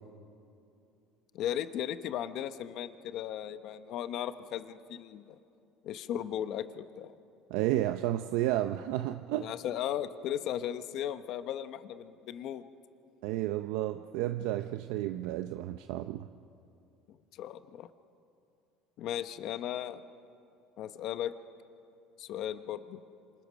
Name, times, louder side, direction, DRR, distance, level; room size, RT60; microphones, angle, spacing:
voice 1, 1.3-5.4 5.8-7.1 9.4-12.6 17.1-17.9 19.0-20.0 20.8-21.3 22.2-23.0, left 11 dB, 50° left, 11 dB, 0.9 m, -36 dB
voice 2, 7.5-9.5 13.2-16.3, right 14 dB, 75° right, 8 dB, 0.6 m, -32 dB
29.5 x 26.5 x 6.3 m, 2.7 s
cardioid pair, 150°, 0 cm